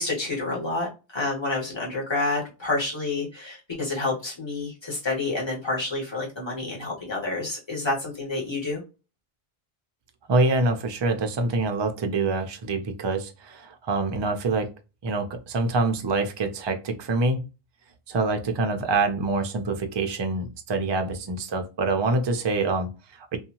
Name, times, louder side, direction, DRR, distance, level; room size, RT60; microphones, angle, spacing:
voice 1, 0.0-8.8, left 2 dB, 25° left, 1.3 m, -29 dB
voice 2, 10.3-14.7 15.0-17.4 18.1-23.4, right 3 dB, 40° right, 0.4 m, -25 dB
2.8 x 2.3 x 2.7 m
omnidirectional pair, 1.0 m